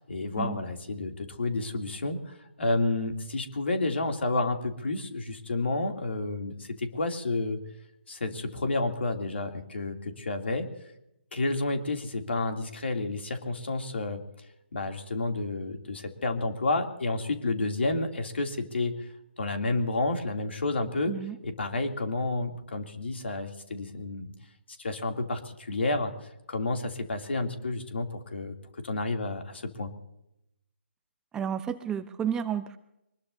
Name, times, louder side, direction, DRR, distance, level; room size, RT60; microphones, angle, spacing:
voice 1, 0.0-7.6 8.1-10.7 11.3-14.2 14.7-18.9 19.4-21.2 21.4-24.3 24.8-26.1 26.5-28.5 28.8-29.9, left 2 dB, 65° left, 4 dB, 2.9 m, -30 dB
voice 2, 31.3-32.8, right 8 dB, 10° right, 10 dB, 0.7 m, -31 dB
24.0 x 20.5 x 2.8 m, 0.83 s
figure-of-eight pair, 140°, 6 cm